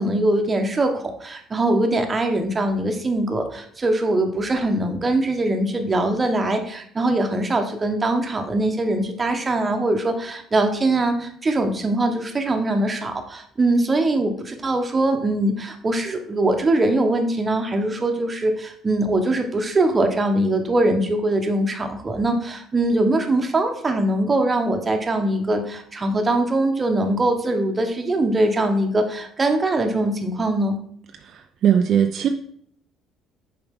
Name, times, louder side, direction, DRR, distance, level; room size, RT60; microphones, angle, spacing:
voice 1, 0.0-30.8, right 2 dB, 25° right, 5 dB, 1.0 m, -22 dB
voice 2, 31.3-32.3, right 8 dB, 55° right, 5 dB, 0.4 m, -19 dB
7.0 x 4.8 x 3.6 m, 0.64 s
cardioid pair, 105°, 0 cm